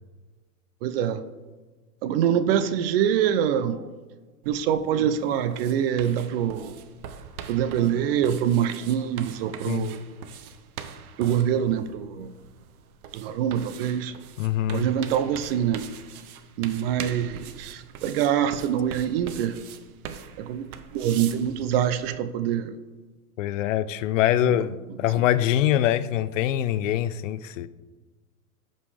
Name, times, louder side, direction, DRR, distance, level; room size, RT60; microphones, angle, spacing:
voice 1, 0.8-1.2 2.0-3.9 4.5-6.8 7.5-10.0 11.2-12.3 13.1-14.1 14.7-15.8 16.6-19.6 20.4-22.7 24.5-24.6, right 9 dB, 40° right, 0.5 m, -25 dB
sound 1, 4.4-22.1, right 7 dB, 70° right, 0.9 m, -42 dB
voice 2, 14.4-14.9 23.4-24.7 25.0-27.7, left 12 dB, 55° left, 0.5 m, -24 dB
13.5 x 5.4 x 3.3 m
hypercardioid pair, 130°, 46 cm